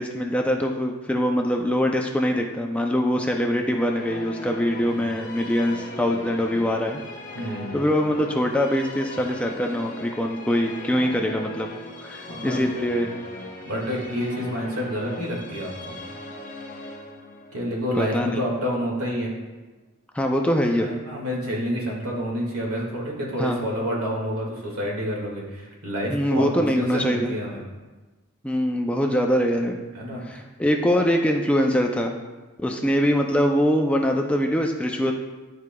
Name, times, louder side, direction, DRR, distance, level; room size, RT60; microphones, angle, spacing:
voice 1, 0.0-7.0 7.7-11.7 12.0-13.1 18.0-18.4 20.1-20.9 23.4-23.7 26.1-27.3 28.4-29.8 30.2-32.1 32.6-35.1, equal, 5° left, 2 dB, 0.4 m, -23 dB
Musical instrument, 3.5-18.9, left 1 dB, 35° left, 0.9 m, -39 dB
voice 2, 7.3-7.7 12.3-12.9 13.7-16.0 17.5-19.3 20.8-27.6 29.9-30.4, equal, 85° right, -2 dB, 1.8 m, -29 dB
11.0 x 4.7 x 2.2 m, 1.2 s
head